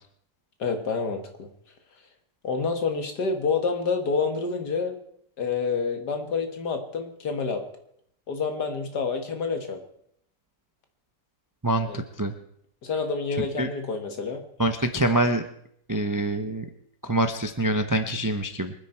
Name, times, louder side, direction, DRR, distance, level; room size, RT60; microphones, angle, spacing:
voice 1, 0.6-1.5 2.4-5.0 5.4-7.6 8.3-9.8 11.9-12.0 12.8-14.4, left 5 dB, 70° left, 5 dB, 2.3 m, -28 dB
voice 2, 11.6-12.3 13.4-13.7 14.6-15.4 15.9-16.6 17.0-18.7, right 1 dB, 20° right, 7 dB, 0.5 m, -25 dB
24.5 x 9.9 x 4.5 m, 0.69 s
omnidirectional pair, 1.8 m